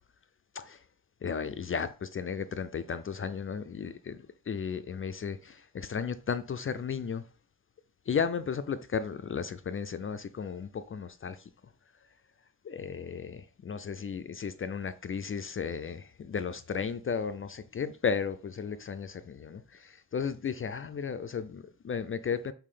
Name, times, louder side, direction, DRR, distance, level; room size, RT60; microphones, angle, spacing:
voice 1, 1.2-3.9 4.5-7.2 8.1-11.4 12.6-22.5, left 6 dB, 40° left, 0.4 m, -34 dB
5.7 x 4.6 x 5.0 m
wide cardioid pair, 150°, 34 cm